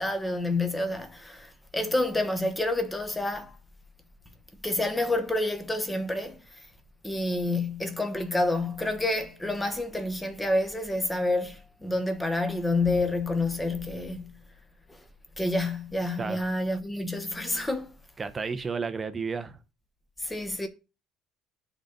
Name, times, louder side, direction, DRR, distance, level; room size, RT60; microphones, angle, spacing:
voice 1, 0.0-3.6 4.6-6.4 7.0-14.3 14.9-15.0 15.4-17.9 20.2-20.7, left 2 dB, 10° left, 1.0 m, -28 dB
voice 2, 18.2-19.6, right 5 dB, 20° right, 0.6 m, -32 dB
9.3 x 3.9 x 5.2 m
cardioid pair, 155°, 0 cm